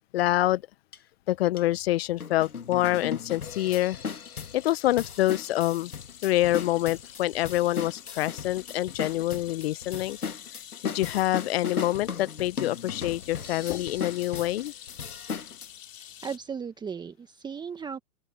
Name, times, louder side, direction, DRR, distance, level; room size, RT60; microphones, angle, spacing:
voice 1, 0.1-0.6 1.3-4.0 4.5-5.9 6.2-10.2 10.8-14.7, left 15 dB, 45° left, 0.7 m, -26 dB
sound 1, 0.9-1.0 1.6-1.7 2.2-15.7, left 6 dB, 85° left, 1.5 m, -37 dB
sound 2, 2.2-16.4, left 10 dB, 60° left, 4.2 m, -48 dB
voice 2, 16.0-18.0, right 6 dB, 10° right, 1.3 m, -36 dB
open air
hypercardioid pair, 120°, 43 cm